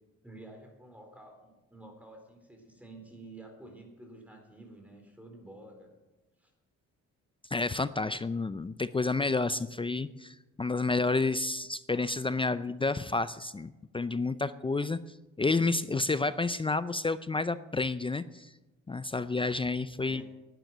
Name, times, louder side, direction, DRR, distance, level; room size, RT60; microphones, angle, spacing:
voice 1, 0.2-6.0 6.4-6.5 20.0-20.2, right 2 dB, 5° right, 3 dB, 3.9 m, -50 dB
voice 2, 7.5-15.0 15.4-18.5 18.9-20.2, left 3 dB, 15° left, 14 dB, 0.5 m, -30 dB
12.0 x 9.1 x 9.3 m, 1.1 s
cardioid pair, 90°, 30 cm